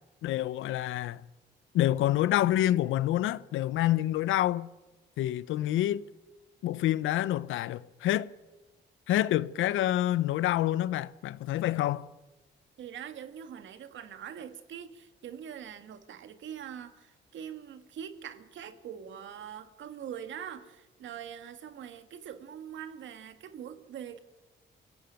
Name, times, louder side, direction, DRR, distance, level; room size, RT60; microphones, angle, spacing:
voice 1, 0.2-1.2 1.7-4.7 5.2-6.0 6.6-8.3 9.1-12.1, left 13 dB, 85° left, 0.8 m, -27 dB
voice 2, 12.8-24.2, right 9 dB, 70° right, 2.0 m, -43 dB
23.0 x 16.5 x 9.3 m
cardioid pair, 90°, 20 cm